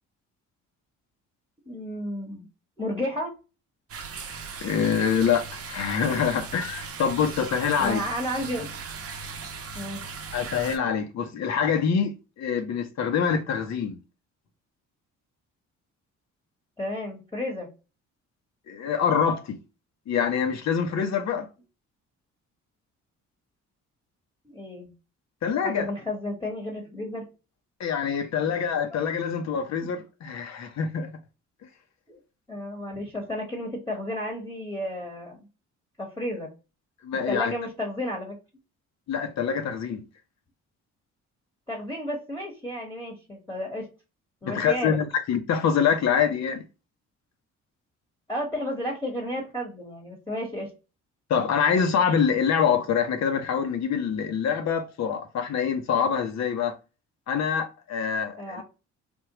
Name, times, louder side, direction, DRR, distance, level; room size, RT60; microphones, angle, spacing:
voice 1, 1.7-2.5 2.8-3.3 7.8-8.7 9.7-10.1 16.8-17.7 24.4-24.9 25.6-27.2 32.1-32.2 32.5-35.5 36.0-36.5 37.3-38.4 41.7-43.9 44.4-45.0 48.3-50.7 58.4-58.6, left 1 dB, 10° left, 1.1 m, -32 dB
sound 1, 3.9-10.8, right 5 dB, 50° right, 0.7 m, -38 dB
voice 2, 4.6-8.0 10.3-14.0 18.7-19.6 20.1-21.5 25.4-25.9 27.8-31.1 37.0-37.5 39.1-40.0 44.5-46.6 51.3-56.8 57.3-58.6, left 7 dB, 65° left, 0.8 m, -25 dB
3.5 x 2.3 x 2.9 m
cardioid pair, 90°, 30 cm